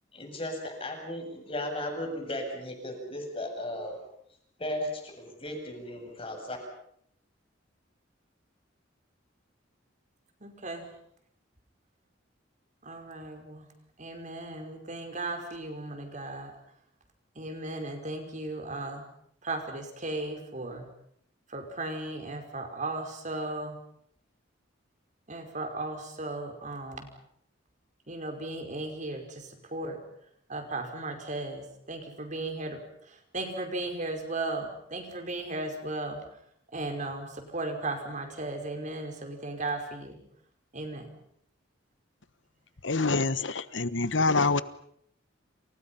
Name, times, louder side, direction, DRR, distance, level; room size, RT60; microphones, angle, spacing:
voice 1, 0.1-4.0 4.6-6.6, left 1 dB, 30° left, 3 dB, 7.8 m, -36 dB
voice 2, 10.4-10.9 12.9-13.7 14.0-16.5 17.4-19.0 19.4-20.9 21.5-23.8 25.3-27.1 28.1-30.0 30.5-32.8 33.3-36.2 36.7-40.2 40.7-41.1, right 2 dB, 40° right, 5 dB, 5.3 m, -36 dB
voice 3, 42.8-44.6, left 3 dB, 70° left, 14 dB, 1.3 m, -26 dB
29.5 x 29.0 x 5.8 m, 0.70 s
head